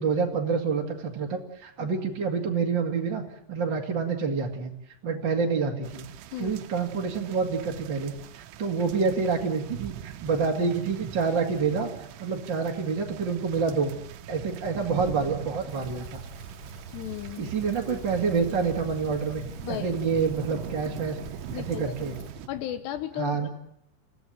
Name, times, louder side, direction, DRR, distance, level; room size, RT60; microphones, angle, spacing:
voice 1, 0.0-3.2 3.5-4.7 5.0-6.1 6.4-13.9 14.3-16.2 17.4-19.4 19.7-21.2 21.5-22.1 23.2-23.5, right 5 dB, 35° right, 1 dB, 2.0 m, -27 dB
sound 1, 5.8-22.5, right 10 dB, 85° right, 3.5 m, -42 dB
Rain, 15.7-22.3, right 4 dB, 20° left, 7.0 m, -44 dB
voice 2, 16.9-17.5 19.6-20.0 21.5-21.9 22.5-23.5, left 11 dB, 75° left, 10 dB, 3.1 m, -35 dB
30.0 x 16.0 x 9.2 m, 0.77 s
omnidirectional pair, 5.0 m